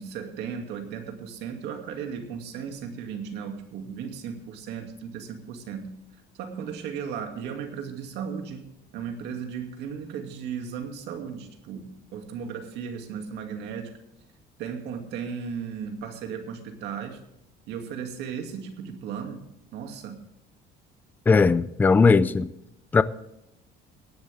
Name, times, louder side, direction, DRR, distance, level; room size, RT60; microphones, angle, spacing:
voice 1, 0.0-5.9 6.3-13.9 14.6-17.2 17.7-19.4 19.7-20.2, right 7 dB, 65° right, 2.4 m, -36 dB
voice 2, 21.3-22.5 22.9-23.0, left 4 dB, 10° left, 0.4 m, -18 dB
17.5 x 11.0 x 3.5 m
cardioid pair, 170°, 19 cm